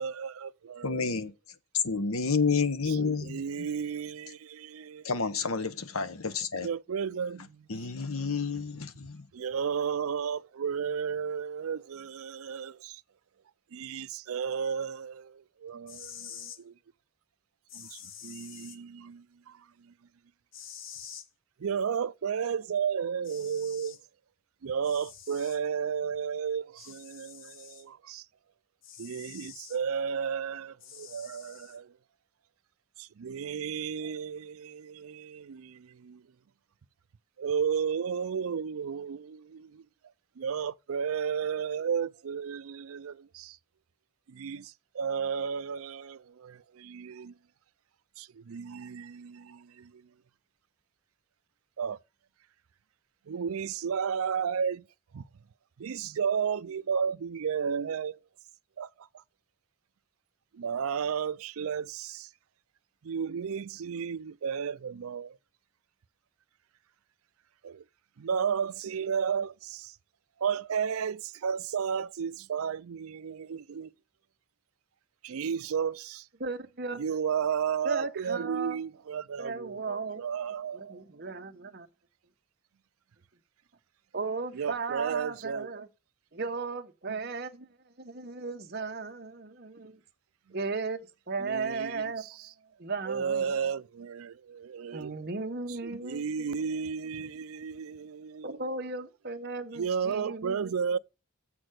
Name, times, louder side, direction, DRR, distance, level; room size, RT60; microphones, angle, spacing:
voice 1, 0.0-1.0 2.9-5.1 6.6-7.7 9.3-13.0 13.7-16.8 17.7-19.9 21.6-24.0 24.6-28.3 29.0-32.0 33.0-36.2 37.4-39.8 40.4-43.6 44.3-47.3 48.2-50.1 51.8-52.0 53.3-54.9 55.1-55.2 55.8-58.2 58.8-59.2 60.5-62.3 63.0-65.4 67.6-67.8 68.2-70.0 70.4-73.9 75.2-76.3 76.9-81.0 84.5-85.7 87.1-87.2 90.5-90.6 91.4-92.5 93.1-95.1 95.7-98.6 99.7-101.0, right 7 dB, 85° right, 0.4 m, -33 dB
voice 2, 0.8-1.3 1.8-3.4 5.0-6.7 7.7-9.2, left 5 dB, 85° left, 1.0 m, -29 dB
sound 1, 15.7-16.6 17.7-18.8 20.5-21.3 22.8-22.9 23.2-24.0 24.8-25.6 26.8-27.9 28.8-29.8 30.8-31.8, left 8 dB, 60° left, 1.2 m, -47 dB
voice 3, 76.4-77.0 77.8-78.8 79.4-80.2 80.7-81.9 84.1-85.9 86.3-90.0 90.5-91.0 91.3-92.2 92.8-93.6 94.9-96.5 98.4-100.7, right 4 dB, 50° right, 1.1 m, -36 dB
7.7 x 6.1 x 6.4 m
head